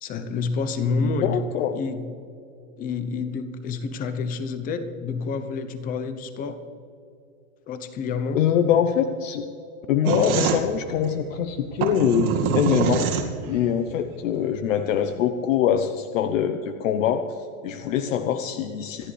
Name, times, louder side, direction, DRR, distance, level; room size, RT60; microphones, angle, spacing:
voice 1, 0.0-1.4 1.7-2.1 2.8-6.6 7.7-8.4, left 4 dB, 20° left, 10 dB, 0.8 m, -28 dB
voice 2, 1.0-1.7 8.3-9.4 9.9-13.1 13.5-17.2 17.6-19.1, left 9 dB, 65° left, 8 dB, 0.9 m, -23 dB
sound 1, 10.0-13.7, right 7 dB, 80° right, 2.3 m, -25 dB
26.5 x 10.5 x 3.3 m, 2.6 s
supercardioid pair, 160°, 42 cm